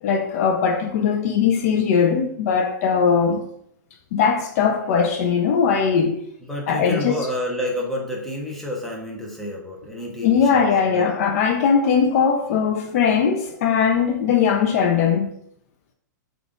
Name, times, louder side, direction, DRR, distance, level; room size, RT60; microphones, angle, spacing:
voice 1, 0.0-3.4 4.1-6.2 6.7-7.3 10.2-15.3, left 6 dB, 50° left, 0.4 m, -20 dB
voice 2, 6.4-11.1, left 1 dB, ahead, 0.8 m, -29 dB
3.3 x 2.4 x 3.7 m
hypercardioid pair, 130°, 10 cm